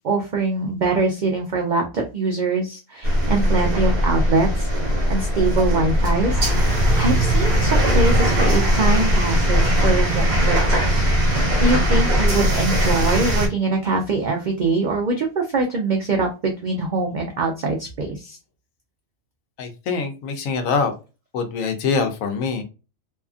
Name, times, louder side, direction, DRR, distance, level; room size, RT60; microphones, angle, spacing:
voice 1, 0.0-4.7 5.1-18.4, right 3 dB, 80° right, 2 dB, 0.4 m, -23 dB
sound 1, 3.0-13.5, equal, 45° right, 0.7 m, -19 dB
voice 2, 19.6-20.9 21.3-22.6, left 5 dB, 85° left, 6 dB, 1.0 m, -24 dB
2.7 x 2.4 x 2.3 m, 0.31 s
omnidirectional pair, 1.4 m